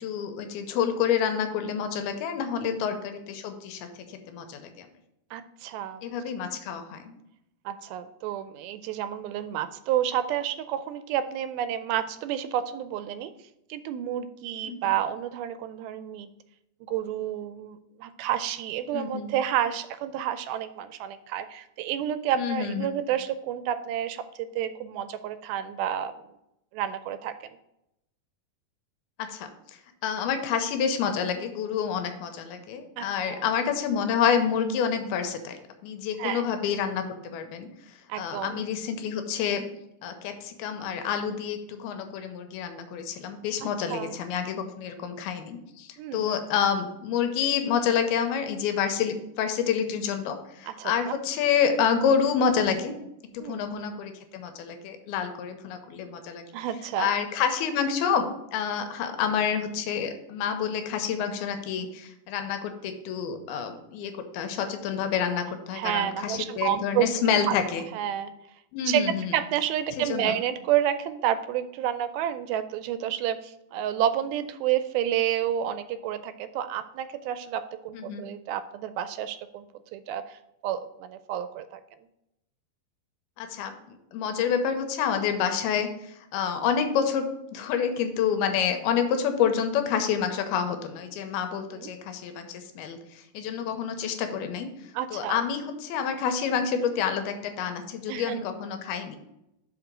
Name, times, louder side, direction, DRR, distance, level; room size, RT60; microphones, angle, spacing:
voice 1, 0.0-4.9 6.0-7.2 14.6-14.8 18.9-19.3 22.4-22.9 29.2-29.5 30.0-35.6 35.8-37.7 38.2-39.7 40.0-52.9 53.3-56.5 57.0-67.8 68.7-69.3 70.0-70.4 77.9-78.3 83.4-94.7 95.1-99.2, left 7 dB, 90° left, 7 dB, 2.7 m, -28 dB
voice 2, 5.3-6.1 7.7-13.3 13.7-16.3 16.9-26.1 26.7-27.3 33.0-33.5 36.2-36.5 38.1-38.6 43.6-44.2 46.0-46.4 50.7-51.2 53.4-53.8 56.5-57.1 65.7-67.1 67.5-67.6 67.9-68.3 68.9-69.0 69.3-79.7 79.9-81.8 91.8-91.9 94.9-95.4 98.1-98.4, right 10 dB, 80° right, 12 dB, 2.3 m, -30 dB
5.9 x 5.0 x 6.1 m, 0.84 s
omnidirectional pair, 4.4 m